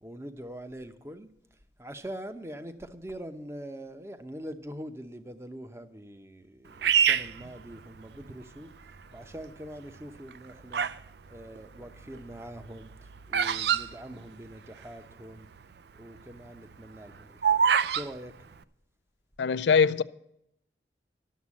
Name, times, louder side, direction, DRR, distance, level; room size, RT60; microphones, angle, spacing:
voice 1, 0.0-1.3 1.8-8.7 9.1-10.9 11.3-15.5 15.9-18.4, equal, 15° right, 0.7 m, -43 dB
Bird vocalization bird call bird song, 6.8-8.3 9.0-9.4 10.1-11.1 11.4-14.8 15.1-15.2 15.4-15.7 16.2-18.1, right 7 dB, 65° right, 0.5 m, -26 dB
voice 2, 19.4-20.0, left 6 dB, 75° left, 0.4 m, -22 dB
11.5 x 7.3 x 7.3 m
head